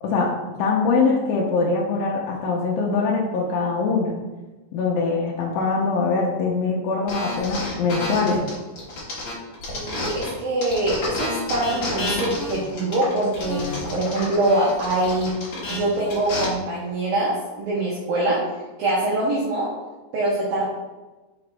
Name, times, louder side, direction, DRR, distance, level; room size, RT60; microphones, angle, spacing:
voice 1, 0.0-4.1 4.7-8.4, left 4 dB, 80° left, -2 dB, 2.2 m, -23 dB
sound 1, 7.1-10.3 10.6-16.4, left 2 dB, 55° left, 1.3 m, -30 dB
voice 2, 9.7-15.4 15.7-18.4 18.8-19.7 20.1-20.6, right 1 dB, 70° right, -5 dB, 2.4 m, -24 dB
5.8 x 5.0 x 3.3 m, 1.2 s
omnidirectional pair, 4.9 m